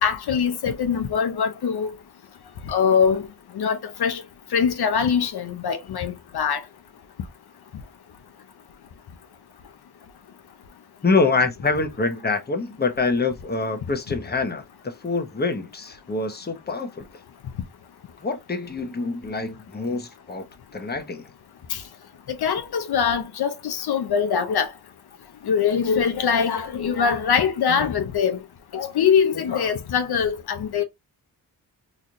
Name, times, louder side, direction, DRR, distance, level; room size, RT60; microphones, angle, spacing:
voice 1, 0.0-1.9 2.7-3.2 3.6-4.2 4.5-6.6 21.7-21.8 22.3-24.7 25.4-28.4 28.7-30.8, left 7 dB, 90° left, 0.8 m, -22 dB
voice 2, 11.0-17.1 18.2-20.5 20.7-21.2, left 3 dB, 25° left, 1.0 m, -25 dB
4.1 x 3.1 x 2.5 m
wide cardioid pair, 115°, 37 cm